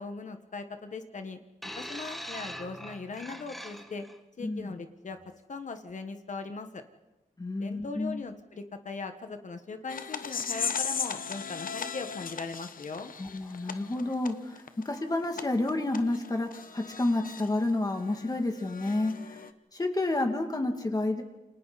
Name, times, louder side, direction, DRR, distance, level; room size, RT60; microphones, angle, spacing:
voice 1, 0.0-4.1 4.4-5.2 5.5-6.8 7.6-13.1, left 4 dB, 60° left, 7 dB, 1.5 m, -39 dB
sound 1, 1.6-4.2 5.1-5.3, equal, ahead, 1.4 m, -42 dB
voice 2, 4.4-4.7 7.4-8.2 13.2-19.4 19.7-21.2, left 2 dB, 25° left, 3 dB, 2.6 m, -30 dB
sound 2, 9.9-17.5 17.9-19.5, left 6 dB, 75° left, 1.1 m, -37 dB
28.5 x 26.5 x 4.2 m, 1.0 s
wide cardioid pair, 140°, 14 cm